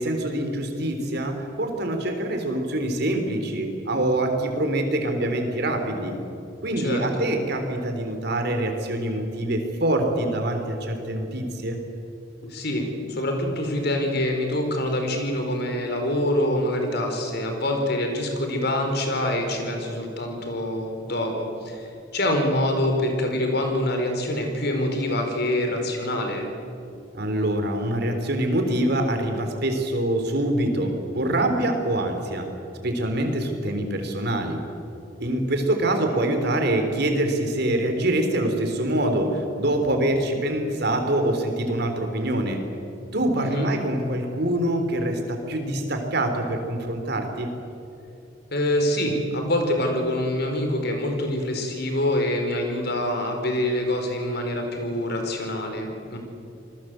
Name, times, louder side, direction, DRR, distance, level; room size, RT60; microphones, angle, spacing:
voice 1, 0.0-6.2 6.6-11.8 27.1-32.5 32.8-34.6 35.2-42.6 43.1-47.5, right 1 dB, 60° right, 5 dB, 3.9 m, -25 dB
voice 2, 6.8-7.3 12.4-26.5 43.3-43.7 48.5-56.2, left 1 dB, 60° left, 4 dB, 4.8 m, -25 dB
27.0 x 20.5 x 7.9 m, 2.8 s
head